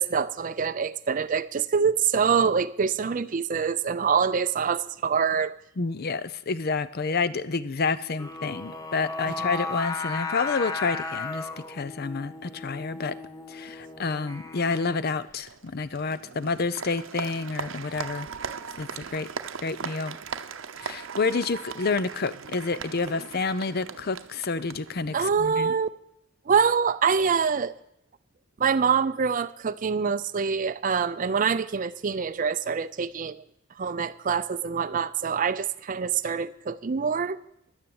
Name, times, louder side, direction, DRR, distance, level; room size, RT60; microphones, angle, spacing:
voice 1, 0.0-5.5 9.3-9.5 18.4-18.6 25.1-25.9 26.5-27.7 28.6-33.4 33.8-37.4, right 6 dB, 40° right, 12 dB, 0.4 m, -25 dB
voice 2, 5.8-13.2 13.5-18.3 18.8-19.3 19.6-20.2 20.8-25.7, left 4 dB, 50° left, 16 dB, 0.6 m, -29 dB
Singing, 8.2-15.3, left 3 dB, 20° left, 1.3 m, -35 dB
Applause, 15.4-25.5, right 6 dB, 70° right, 0.7 m, -39 dB
10.5 x 9.8 x 8.8 m, 0.77 s
head